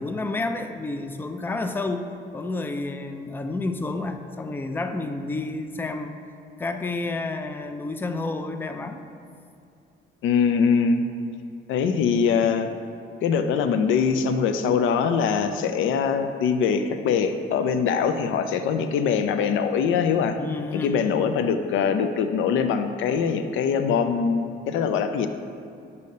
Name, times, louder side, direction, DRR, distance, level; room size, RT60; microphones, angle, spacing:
voice 1, 0.0-6.2 6.6-9.0 20.4-21.3, left 2 dB, 10° left, 7 dB, 0.3 m, -30 dB
voice 2, 10.2-11.0 11.7-12.7 13.2-20.4 20.7-25.3, left 6 dB, 85° left, 8 dB, 0.4 m, -23 dB
6.5 x 2.7 x 5.2 m, 2.5 s
cardioid pair, 90°, 20 cm